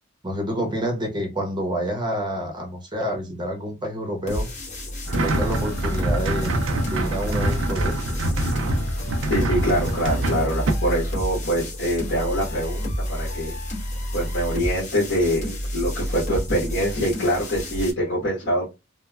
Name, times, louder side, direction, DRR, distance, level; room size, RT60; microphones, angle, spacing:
voice 1, 0.2-4.5 5.2-6.6 6.9-8.2, equal, 20° right, 2 dB, 0.8 m, -28 dB
sound 1, 4.3-17.9, equal, 40° left, 1.0 m, -29 dB
sound 2, 5.1-10.7, right 2 dB, 75° right, 0.5 m, -25 dB
voice 2, 9.3-13.5 14.1-18.7, equal, 65° left, -7 dB, 1.3 m, -24 dB
3.2 x 2.1 x 2.3 m, 0.25 s
head